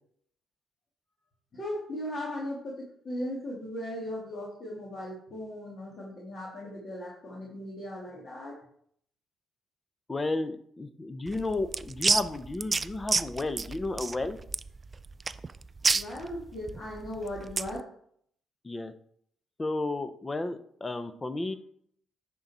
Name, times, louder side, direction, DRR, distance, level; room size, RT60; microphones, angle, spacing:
voice 1, 1.5-8.6 15.9-17.8, left 1 dB, 45° left, -5 dB, 2.2 m, -37 dB
voice 2, 10.1-14.4 18.6-18.9 19.6-21.6, left 2 dB, 20° left, 11 dB, 0.7 m, -32 dB
sound 1, 11.3-17.8, right 4 dB, 30° right, 0.3 m, -30 dB
10.0 x 3.9 x 4.2 m, 0.65 s
cardioid pair, 90°, 0 cm